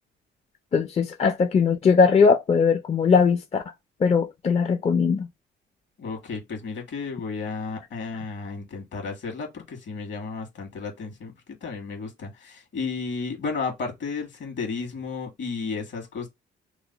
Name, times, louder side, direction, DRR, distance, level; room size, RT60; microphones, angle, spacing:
voice 1, 0.7-3.6 4.0-5.3, left 5 dB, 35° left, 0.4 m, -20 dB
voice 2, 6.0-11.3 11.6-16.3, left 4 dB, 65° left, 1.6 m, -33 dB
3.0 x 2.1 x 4.0 m
cardioid pair, 90°, 20 cm